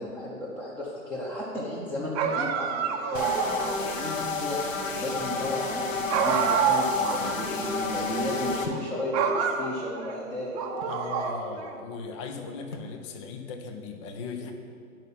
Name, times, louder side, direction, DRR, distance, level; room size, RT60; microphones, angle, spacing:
voice 1, 0.0-10.6, left 1 dB, 5° left, -8 dB, 0.9 m, -34 dB
sound 1, 2.1-3.9 6.1-7.3 7.6-7.7 8.6-8.8 9.1-10.1 10.6-11.7, right 6 dB, 25° right, 0.7 m, -27 dB
sound 2, 3.1-8.7, left 4 dB, 60° left, 1.2 m, -31 dB
sound 3, 8.6-9.0 9.9-11.1 12.7-13.0, left 3 dB, 90° left, 1.2 m, -40 dB
voice 2, 10.8-14.5, left 4 dB, 20° left, 5 dB, 0.5 m, -38 dB
10.5 x 5.8 x 5.7 m, 2.3 s
figure-of-eight pair, 120°, 43 cm